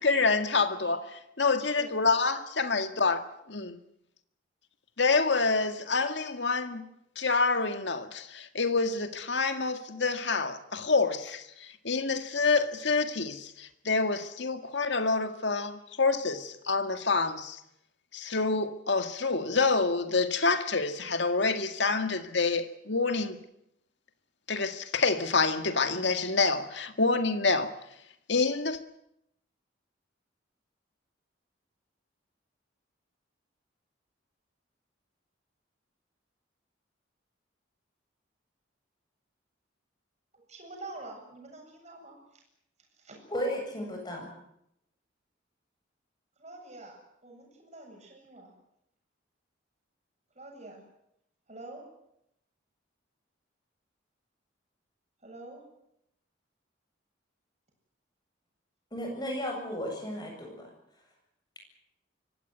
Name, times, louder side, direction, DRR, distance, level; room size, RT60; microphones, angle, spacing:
voice 1, 0.0-3.8 5.0-6.9 7.2-17.6 18.1-23.4 24.5-27.7 28.3-28.8, left 4 dB, 65° left, 1.9 m, -27 dB
voice 2, 1.6-2.0 40.3-42.4 43.0-43.2 46.4-48.5 50.3-50.8 51.5-51.8 55.2-55.6, right 2 dB, 35° right, 7.9 m, -47 dB
voice 3, 43.3-44.3 58.9-60.7, equal, 20° left, 7.8 m, -34 dB
24.5 x 17.0 x 9.5 m
head